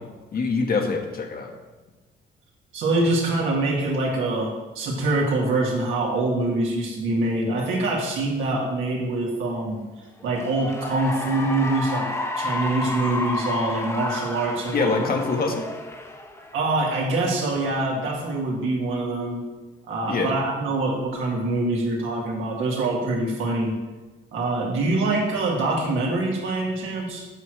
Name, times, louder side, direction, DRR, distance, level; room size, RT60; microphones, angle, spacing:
voice 1, 0.3-1.5 14.7-15.7 20.1-20.3, left 4 dB, 50° left, 3 dB, 1.5 m, -24 dB
voice 2, 2.7-9.8 10.2-12.1 12.4-15.1 16.5-19.4 19.9-23.7 24.3-27.3, right 2 dB, 80° right, -2 dB, 2.2 m, -24 dB
Cheering / Applause, 10.2-16.9, left 2 dB, 15° left, 1.0 m, -31 dB
8.1 x 4.6 x 6.4 m, 1.2 s
cardioid pair, 90°, 20 cm